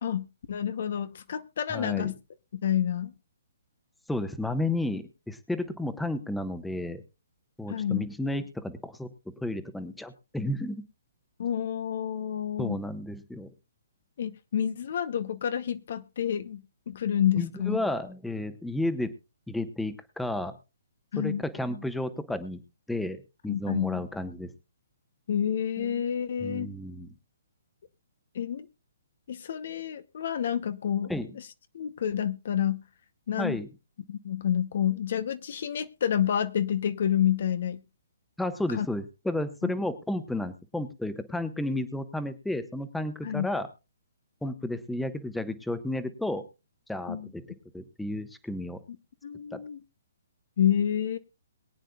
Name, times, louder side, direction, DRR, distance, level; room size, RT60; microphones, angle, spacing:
voice 1, 0.0-2.1 2.5-3.1 7.7-8.1 11.4-12.8 14.2-17.8 21.1-21.4 23.5-24.0 25.3-26.7 28.3-28.7 29.3-31.5 31.7-32.8 33.3-33.6 34.1-37.8 38.7-38.9 39.6-39.7 43.2-43.5 47.1-47.3 49.2-49.8 50.6-51.2, left 9 dB, 55° left, 0.8 m, -29 dB
voice 2, 1.7-2.1 4.1-7.0 7.6-9.1 9.4-10.8 12.6-13.5 17.3-19.1 19.5-20.5 21.2-22.6 22.9-24.5 25.8-26.0 26.4-27.1 31.1-31.3 33.4-33.7 38.4-43.7 44.4-46.4 46.9-47.4 47.7-48.8 49.5-49.6, left 1 dB, 5° left, 1.1 m, -32 dB
22.5 x 9.1 x 2.3 m
figure-of-eight pair, 135°, 0 cm